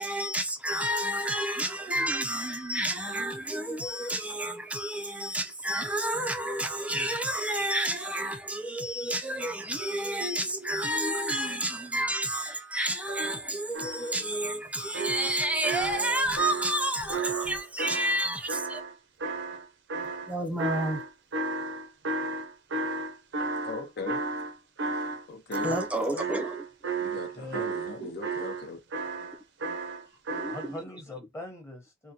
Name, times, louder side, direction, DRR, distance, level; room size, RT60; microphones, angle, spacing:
voice 1, 0.0-18.8 20.3-21.0 25.6-26.5 28.0-28.1 30.4-30.7, right 1 dB, 5° right, 0.4 m, -30 dB
sound 1, 13.1-13.9 15.5-15.6 15.8-18.8, right 5 dB, 90° right, 0.8 m, -46 dB
sound 2, 13.7-14.3 14.9-18.9 19.2-25.2 25.5-30.7, right 3 dB, 60° right, 0.6 m, -33 dB
voice 2, 23.6-24.2 24.9-25.8 27.0-28.8, left 3 dB, 55° left, 0.6 m, -39 dB
voice 3, 26.0-26.3 27.1-27.7 30.0-32.1, left 1 dB, 15° left, 0.9 m, -43 dB
3.7 x 2.1 x 2.7 m
head